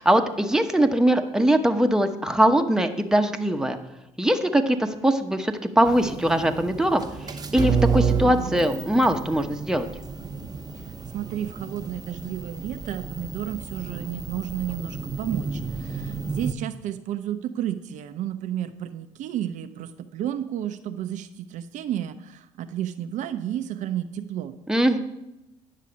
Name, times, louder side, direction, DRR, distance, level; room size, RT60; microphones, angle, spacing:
voice 1, 0.0-3.8 4.2-9.9 24.7-25.0, right 1 dB, 5° right, 6 dB, 1.0 m, -21 dB
sound 1, 5.9-16.5, right 5 dB, 25° right, 0.8 m, -30 dB
voice 2, 11.1-24.5, right 11 dB, 55° right, 9 dB, 0.6 m, -32 dB
9.7 x 6.6 x 5.2 m, 0.92 s
hypercardioid pair, 60°, 15 cm